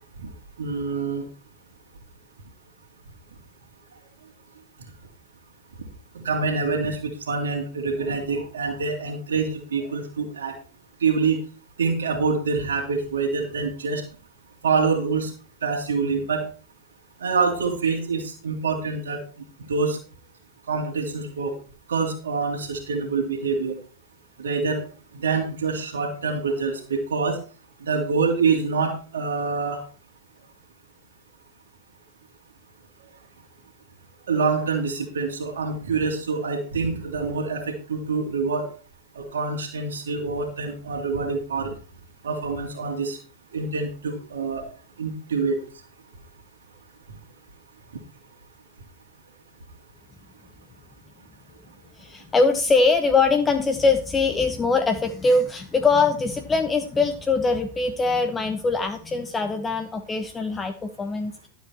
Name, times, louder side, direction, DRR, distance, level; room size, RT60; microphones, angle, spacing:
voice 1, 0.6-1.2 6.1-10.5 11.0-11.4 11.8-14.0 14.6-15.3 15.6-16.5 17.2-19.2 19.7-20.0 20.7-21.5 21.9-23.8 24.4-24.8 25.1-27.4 27.8-29.8 34.3-38.7 39.2-41.7 42.2-43.2 43.5-44.7 45.0-45.6, right 4 dB, 65° right, 1 dB, 2.2 m, -26 dB
voice 2, 52.0-61.5, left 3 dB, 15° left, 7 dB, 1.0 m, -22 dB
12.5 x 7.2 x 4.4 m, 0.39 s
figure-of-eight pair, 90°, 0 cm